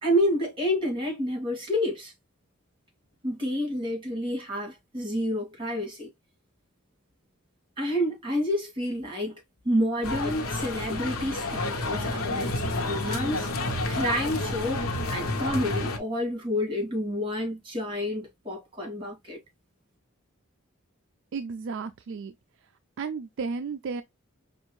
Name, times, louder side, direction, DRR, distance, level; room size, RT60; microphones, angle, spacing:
voice 1, 0.0-2.1 3.2-6.1 7.8-13.5 13.9-19.4, equal, 25° right, 2.3 m, -29 dB
sound 1, 10.0-16.0, left 2 dB, 85° left, 0.9 m, -30 dB
voice 2, 21.3-22.3 23.0-24.0, right 5 dB, 60° right, 0.4 m, -33 dB
5.4 x 2.5 x 3.0 m
head